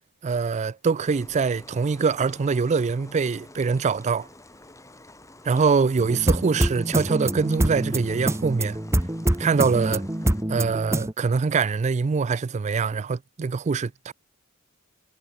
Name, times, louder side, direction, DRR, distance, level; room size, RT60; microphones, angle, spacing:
voice 1, 0.2-4.3 5.4-8.8 9.4-10.1 10.5-14.1, right 5 dB, 30° right, 0.3 m, -24 dB
sound 1, 1.0-10.4, left 2 dB, 15° left, 3.8 m, -49 dB
sound 2, 6.0-11.1, right 1 dB, 10° right, 1.1 m, -26 dB
head